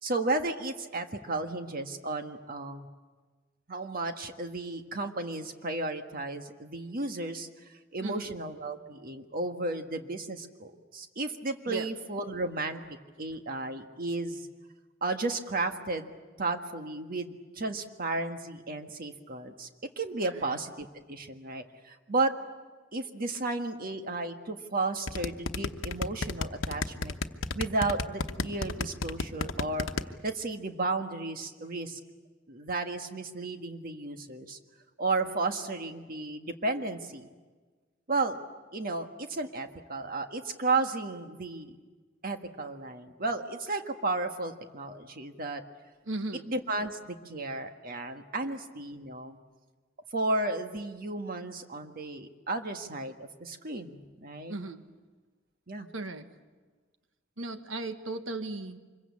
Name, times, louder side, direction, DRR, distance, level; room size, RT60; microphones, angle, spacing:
voice 1, 0.0-2.9 3.7-7.5 7.9-12.8 13.2-14.5 15.0-16.1 16.4-19.7 20.0-22.3 22.9-27.1 27.5-29.9 30.2-32.0 32.5-34.6 35.0-37.3 38.1-38.4 38.7-41.7 42.2-45.6 46.3-49.4 50.1-54.5 55.7-55.9, right 2 dB, 50° right, 6 dB, 1.6 m, -33 dB
sound 1, 25.1-30.0, left 3 dB, 90° left, 1.0 m, -31 dB
voice 2, 46.1-46.5 48.4-48.5 54.5-54.8 55.9-56.3 57.4-58.8, right 2 dB, 75° right, 8 dB, 1.4 m, -36 dB
25.5 x 22.5 x 8.4 m, 1.3 s
head